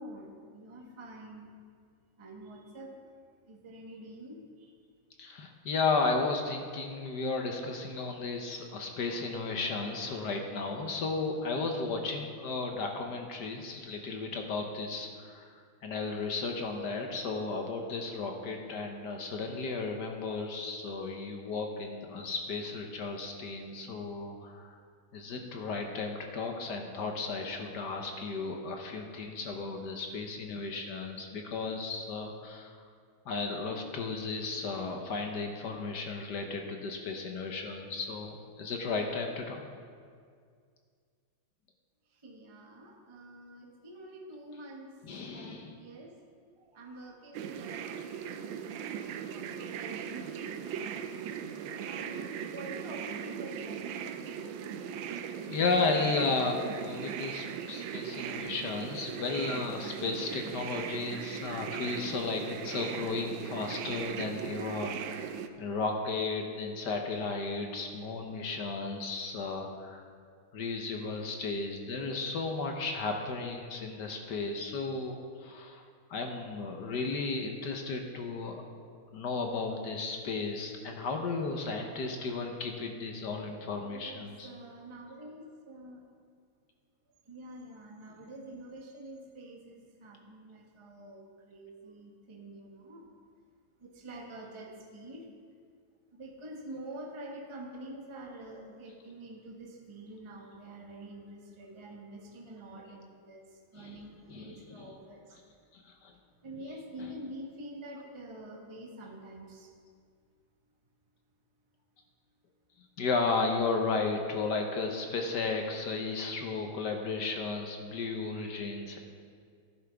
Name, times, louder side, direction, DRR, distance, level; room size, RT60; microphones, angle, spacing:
voice 1, 0.0-1.5 2.2-3.1 3.5-4.7 42.2-44.9 45.2-46.1 46.6-48.1 48.4-51.4 51.8-54.9 83.9-86.0 87.2-93.2 93.8-95.3 96.1-103.4 103.7-105.4 106.4-109.7, right 1 dB, 20° right, 0 dB, 0.8 m, -47 dB
voice 2, 5.2-15.5 15.8-24.8 25.1-32.7 33.3-39.6 45.0-45.7 55.5-65.3 65.6-70.0 70.5-75.8 76.1-78.6 79.1-84.5 103.7-104.0 104.3-104.9 105.7-106.1 107.0-107.1 113.0-119.0, left 3 dB, 60° left, 3 dB, 1.4 m, -34 dB
sound 1, 47.3-65.5, right 8 dB, 75° right, 1.3 m, -39 dB
13.5 x 11.5 x 3.5 m, 2.1 s
omnidirectional pair, 2.3 m